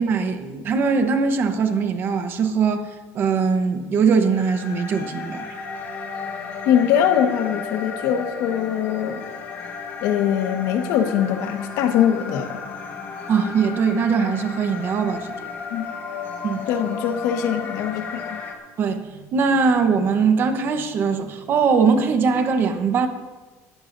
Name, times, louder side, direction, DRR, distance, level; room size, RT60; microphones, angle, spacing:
voice 1, 0.0-2.8 3.1-5.5 13.3-15.3 16.4-16.7 18.8-23.1, right 5 dB, 40° right, 7 dB, 1.0 m, -21 dB
sound 1, 4.3-18.5, left 5 dB, 35° left, 1.6 m, -34 dB
voice 2, 6.6-9.3 10.0-12.6 15.7-15.9 16.7-18.4, left 9 dB, 75° left, 5 dB, 1.5 m, -22 dB
20.0 x 14.5 x 2.7 m, 1.3 s
cardioid pair, 165°, 6 cm